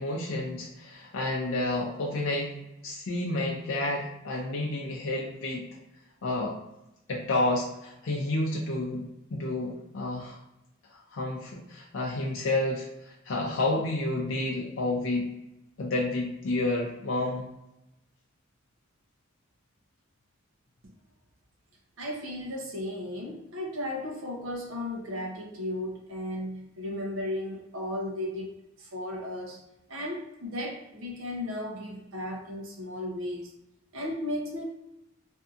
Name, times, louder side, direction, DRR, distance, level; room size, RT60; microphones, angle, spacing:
voice 1, 0.0-5.7 6.2-6.5 7.1-10.4 11.1-12.9 13.3-15.3 15.8-17.5, left 2 dB, 70° left, -1 dB, 0.5 m, -30 dB
voice 2, 22.0-29.6 29.9-33.5 33.9-34.6, left 1 dB, 70° right, 0 dB, 0.7 m, -35 dB
2.6 x 2.5 x 2.4 m, 0.90 s
head